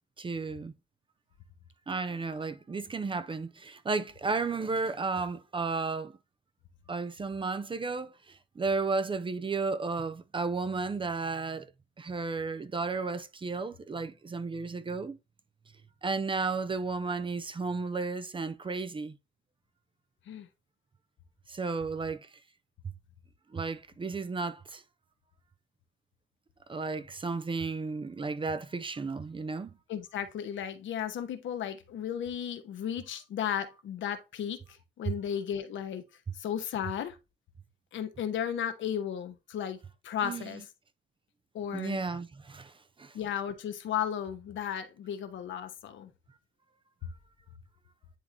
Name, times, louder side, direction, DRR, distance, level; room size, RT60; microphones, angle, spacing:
voice 1, 0.2-0.7 1.9-6.1 6.9-11.7 12.0-15.2 16.0-19.2 21.5-22.3 23.5-24.8 26.7-29.7 40.2-40.4 41.7-42.7 43.0-43.1, right 4 dB, 25° right, 0.6 m, -33 dB
voice 2, 29.9-36.0 36.3-37.2 37.9-39.8 40.0-40.7 41.5-42.0 43.1-46.1, left 9 dB, 70° left, 1.0 m, -34 dB
10.0 x 3.4 x 2.8 m
cardioid pair, 90°, 20 cm